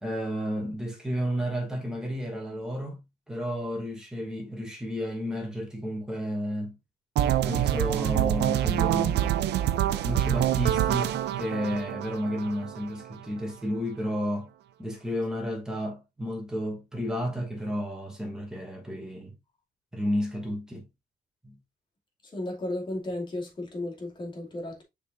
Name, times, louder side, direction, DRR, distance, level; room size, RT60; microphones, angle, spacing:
voice 1, 0.0-3.0 3.3-6.8 7.4-9.2 10.0-14.5 14.8-19.3 19.9-20.9 21.4-21.6, equal, 5° right, 2.4 m, -32 dB
sound 1, 7.2-13.1, right 11 dB, 75° right, 0.6 m, -26 dB
voice 2, 22.2-24.8, left 1 dB, 25° left, 2.6 m, -34 dB
6.7 x 5.4 x 2.6 m
cardioid pair, 145°, 18 cm